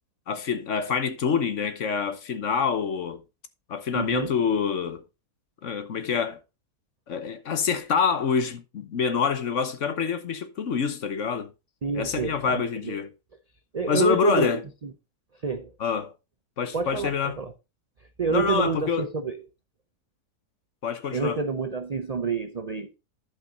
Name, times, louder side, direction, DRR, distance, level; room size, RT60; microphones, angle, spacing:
voice 1, 0.3-3.2 3.7-5.0 5.6-6.4 7.1-11.5 11.9-13.1 13.9-14.6 15.8-16.1 16.6-17.4 18.3-19.1 20.8-21.4, left 6 dB, 55° left, 1.2 m, -26 dB
voice 2, 3.9-4.3 11.8-13.0 13.7-14.5 15.4-15.7 16.7-17.5 18.2-19.4 21.1-22.9, right 5 dB, 60° right, 0.4 m, -28 dB
11.5 x 5.4 x 3.9 m
omnidirectional pair, 1.7 m